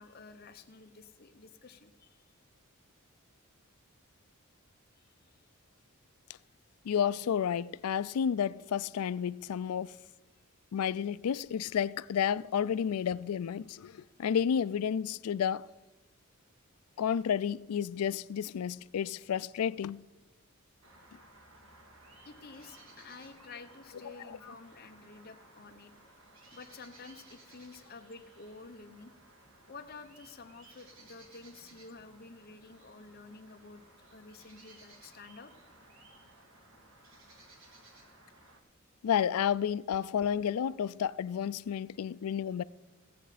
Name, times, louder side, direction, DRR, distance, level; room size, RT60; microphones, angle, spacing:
voice 1, 0.0-2.2 5.0-5.3 22.2-25.9 26.5-29.1 29.7-33.8 34.1-35.5, left 4 dB, 45° left, 0.9 m, -51 dB
voice 2, 6.8-9.9 10.7-15.7 17.0-20.0 24.1-24.5 39.0-42.6, left 8 dB, 90° left, 0.4 m, -31 dB
sound 1, 20.8-38.6, right 2 dB, 65° right, 1.9 m, -58 dB
17.0 x 7.7 x 5.0 m
head